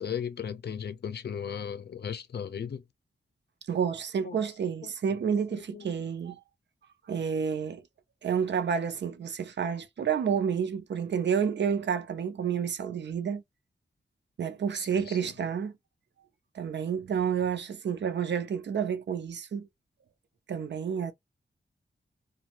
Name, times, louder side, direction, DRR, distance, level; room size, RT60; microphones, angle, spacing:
voice 1, 0.0-2.8 4.2-5.2 5.5-5.9 14.7-15.3, left 7 dB, 60° left, 0.5 m, -37 dB
voice 2, 3.7-6.4 7.1-7.8 8.2-13.4 14.4-15.7 16.5-19.7 20.5-21.1, right 7 dB, 70° right, 0.6 m, -30 dB
2.6 x 2.2 x 2.9 m
wide cardioid pair, 135°, 19 cm